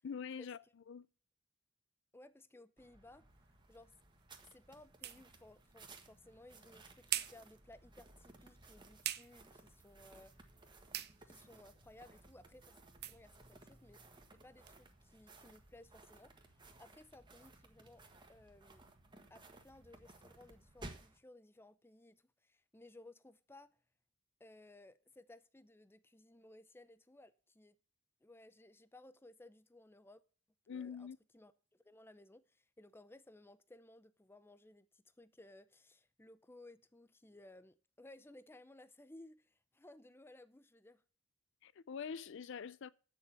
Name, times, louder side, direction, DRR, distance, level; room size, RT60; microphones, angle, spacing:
voice 1, 0.0-1.1 30.7-31.2 41.6-42.9, left 6 dB, 60° left, 0.4 m, -45 dB
voice 2, 2.1-3.2 3.7-3.9 4.4-10.4 11.2-12.8 13.1-14.0 14.3-16.5 16.8-18.0 18.3-18.9 19.3-23.8 24.4-27.8 28.2-30.2 30.7-31.1 31.3-41.0, left 1 dB, 10° left, 0.6 m, -59 dB
sound 1, 2.8-21.2, right 2 dB, 25° right, 1.5 m, -59 dB
sound 2, 3.3-14.8, right 13 dB, 55° right, 0.7 m, -48 dB
8.8 x 6.8 x 8.7 m
head